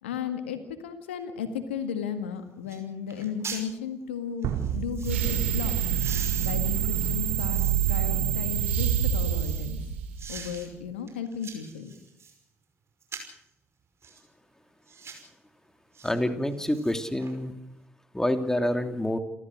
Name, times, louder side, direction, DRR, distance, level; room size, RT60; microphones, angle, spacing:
voice 1, 0.0-5.8 6.4-7.6 7.9-9.8 10.3-11.9, left 7 dB, 85° left, 8 dB, 1.9 m, -35 dB
sound 1, 2.2-2.3 2.7-2.8 3.1-3.7 4.4-5.2 5.8-8.0 8.5-9.7 10.2-10.7 11.1-12.4 13.0-13.4 14.0-14.2 14.8-15.3 15.9-16.1 16.5-17.3 17.7-17.8, right 5 dB, 45° right, 5.5 m, -43 dB
sound 2, 4.4-6.9, right 9 dB, 70° right, 3.2 m, -34 dB
sound 3, 5.0-10.5, right 10 dB, 85° right, 2.2 m, -26 dB
voice 2, 16.0-17.5 18.1-19.2, left 1 dB, 10° left, 7 dB, 2.9 m, -27 dB
28.5 x 14.0 x 6.6 m, 0.81 s
hypercardioid pair, 45°, 6 cm